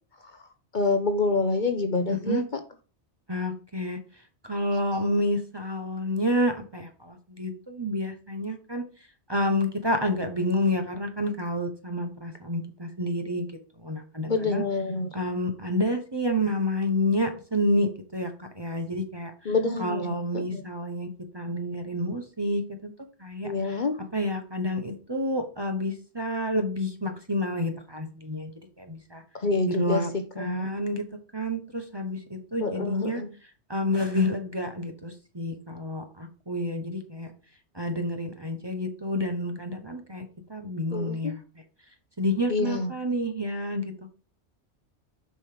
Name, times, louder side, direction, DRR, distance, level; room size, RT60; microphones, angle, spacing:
voice 1, 0.7-2.4 14.3-15.1 19.4-20.7 23.4-24.0 29.4-30.7 32.6-33.3 40.9-41.3 42.5-42.9, left 3 dB, 45° left, 0.9 m, -27 dB
voice 2, 2.1-2.4 3.3-4.0 4.5-8.8 9.3-13.5 13.8-14.6 15.1-18.3 18.6-19.3 19.8-21.1 21.3-22.9 23.2-23.8 24.1-28.5 28.9-29.2 29.7-31.1 31.3-33.2 33.7-37.3 37.8-41.4 42.2-43.9, left 1 dB, 25° right, 1.0 m, -29 dB
7.0 x 5.4 x 5.0 m
omnidirectional pair, 1.2 m